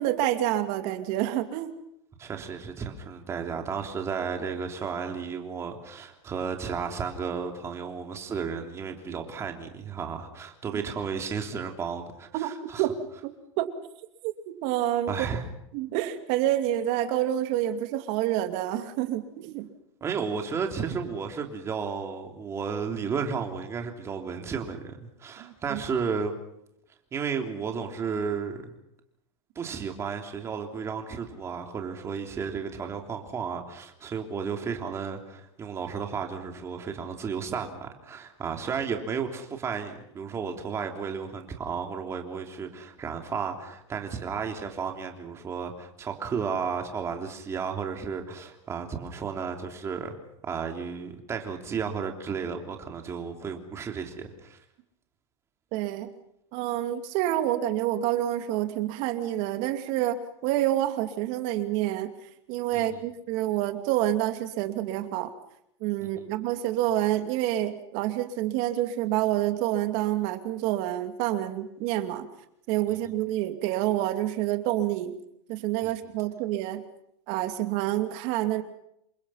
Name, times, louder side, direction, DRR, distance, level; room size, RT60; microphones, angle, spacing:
voice 1, 0.0-1.7 10.7-10.8 12.3-12.5 12.8-12.9 13.2-13.3 13.6-13.7 14.2-15.3 15.7-19.6 25.4-25.8 55.7-56.1 56.5-62.1 62.5-65.3 65.8-72.3 72.7-75.1 75.5-76.8 77.3-78.6, right 13 dB, 45° right, 8 dB, 2.6 m, -28 dB
voice 2, 2.2-12.8 15.1-15.5 20.0-26.3 27.1-28.8 29.5-50.1 50.4-54.6 62.7-63.1 66.2-66.3 75.8-75.9, right 6 dB, 20° right, 4 dB, 3.2 m, -33 dB
28.5 x 24.0 x 5.8 m, 0.78 s
supercardioid pair, 155°, 15 cm